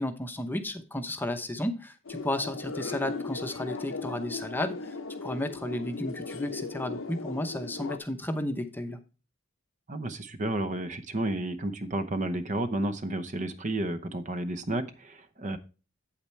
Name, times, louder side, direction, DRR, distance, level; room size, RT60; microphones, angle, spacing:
voice 1, 0.0-5.0 5.2-9.0, left 1 dB, 10° left, 7 dB, 0.8 m, -33 dB
sound 1, 2.1-8.0, left 4 dB, 80° left, 0.8 m, -38 dB
voice 2, 9.9-15.6, right 1 dB, 40° right, 10 dB, 0.8 m, -31 dB
8.7 x 8.4 x 3.2 m, 0.31 s
head